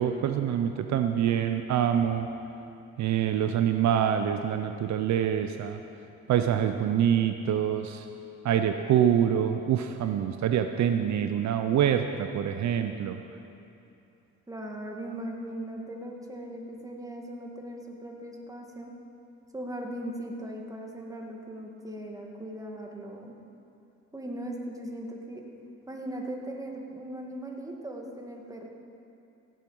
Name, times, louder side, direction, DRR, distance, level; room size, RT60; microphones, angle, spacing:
voice 1, 0.0-2.3 3.0-5.8 6.3-8.1 8.4-13.2, right 9 dB, 65° right, 7 dB, 0.6 m, -25 dB
voice 2, 14.5-18.9 19.5-23.4 24.1-25.4 25.9-28.7, right 1 dB, 10° right, 0 dB, 1.9 m, -39 dB
16.5 x 7.8 x 5.5 m, 2.7 s
cardioid pair, 90°, 30 cm